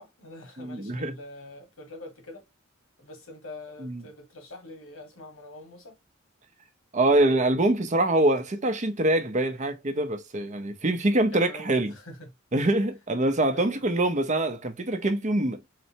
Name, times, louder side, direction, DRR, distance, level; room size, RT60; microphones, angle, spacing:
voice 1, 0.0-2.4 3.0-6.0 11.3-12.3 13.5-13.8, left 2 dB, 90° left, 1.6 m, -44 dB
voice 2, 0.6-1.2 3.8-4.0 6.9-11.9 12.5-15.6, right 1 dB, 35° right, 0.7 m, -24 dB
4.0 x 3.2 x 2.8 m
head